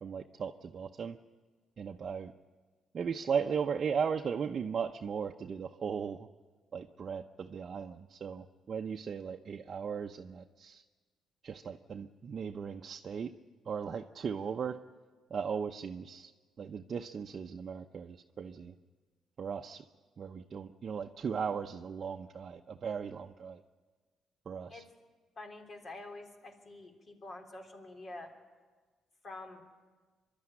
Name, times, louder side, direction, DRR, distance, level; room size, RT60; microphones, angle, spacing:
voice 1, 0.0-1.2 1.8-2.3 2.9-6.2 6.7-10.8 11.4-13.3 13.7-14.8 15.3-16.3 16.6-18.7 19.4-19.8 20.2-23.6 24.5-24.8, right 6 dB, 50° right, 3 dB, 0.7 m, -37 dB
voice 2, 25.4-28.3 29.2-29.6, left 2 dB, 45° left, 3 dB, 3.4 m, -47 dB
24.0 x 12.5 x 9.8 m, 1.4 s
cardioid pair, 90°, 0 cm